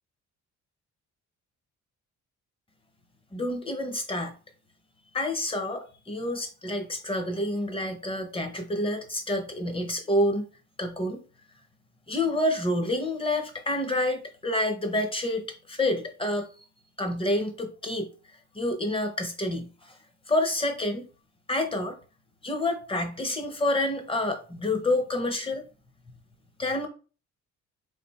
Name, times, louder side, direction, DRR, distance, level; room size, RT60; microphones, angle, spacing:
voice 1, 3.3-4.3 5.1-10.4 10.8-11.2 12.1-16.5 17.0-18.1 18.5-19.7 20.3-21.1 21.5-22.0 22.4-25.6 26.6-26.9, left 1 dB, 20° left, 0.9 m, -28 dB
3.4 x 2.6 x 4.2 m
cardioid pair, 90°, 30 cm